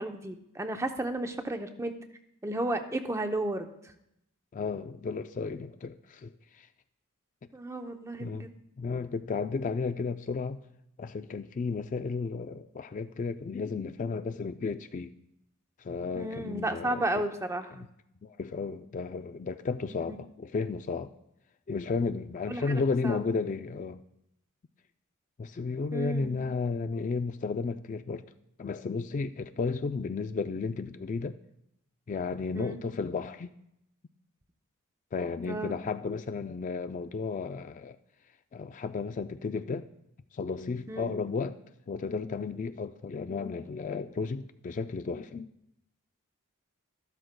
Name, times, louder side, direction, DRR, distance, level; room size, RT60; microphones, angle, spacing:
voice 1, 0.0-1.9 2.4-3.7 7.5-8.5 16.2-17.9 19.9-20.0 22.5-22.7 23.0-23.2 25.9-26.5 32.5-32.8 35.5-35.8 40.9-41.1, right 1 dB, 15° right, 0.6 m, -33 dB
voice 2, 4.5-6.7 8.2-8.5 8.8-10.6 11.0-15.1 15.8-17.2 17.7-17.8 18.2-21.1 21.7-24.0 25.4-28.2 28.6-31.4 32.1-33.5 35.1-38.0 38.5-39.9 40.3-41.6 41.9-45.5, left 4 dB, 35° left, 0.3 m, -33 dB
13.0 x 12.5 x 2.2 m
head